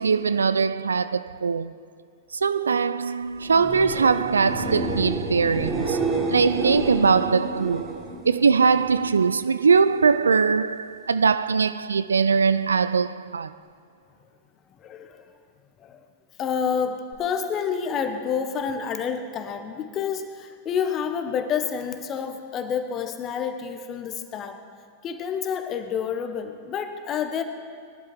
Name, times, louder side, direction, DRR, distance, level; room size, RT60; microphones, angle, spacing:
voice 1, 0.0-1.7 2.3-13.5, right 5 dB, 75° right, 0.3 m, -21 dB
sound 1, 3.4-9.1 9.5-10.1 17.1-17.2, right 2 dB, 30° right, 3.4 m, -30 dB
voice 2, 14.8-15.2 15.8-16.0 16.4-24.6 25.0-27.4, left 7 dB, 30° left, 1.3 m, -28 dB
21.0 x 12.0 x 4.5 m
figure-of-eight pair, 90°, 0 cm